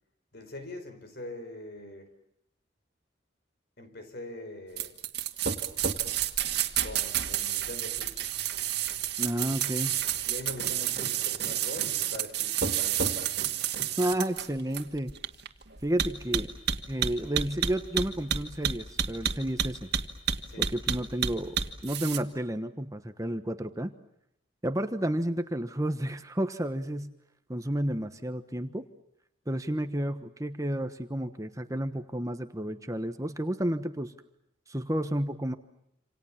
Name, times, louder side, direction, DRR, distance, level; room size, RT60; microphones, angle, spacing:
voice 1, 0.3-2.1 3.8-5.0 6.8-8.3 10.2-13.3 20.5-20.7, left 1 dB, 55° left, 4.7 m, -43 dB
sound 1, 4.8-22.2, right 9 dB, 55° right, 2.1 m, -29 dB
voice 2, 9.2-9.9 14.0-15.1 15.8-16.5 16.9-19.9 20.6-21.6 21.8-23.9 24.6-27.1 27.5-28.8 29.5-34.1 34.7-35.5, right 1 dB, 15° right, 1.1 m, -31 dB
28.0 x 27.5 x 7.3 m
head